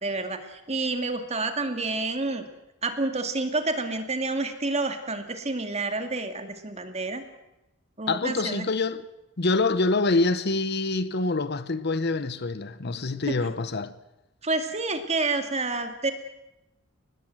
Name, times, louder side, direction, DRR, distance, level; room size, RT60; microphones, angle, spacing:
voice 1, 0.0-2.4 2.8-7.2 8.0-8.7 13.3-13.4 14.4-16.1, right 3 dB, 30° right, 2.2 m, -29 dB
voice 2, 8.1-9.0 9.4-14.0, left 3 dB, 50° left, 0.9 m, -26 dB
22.0 x 20.0 x 7.8 m
head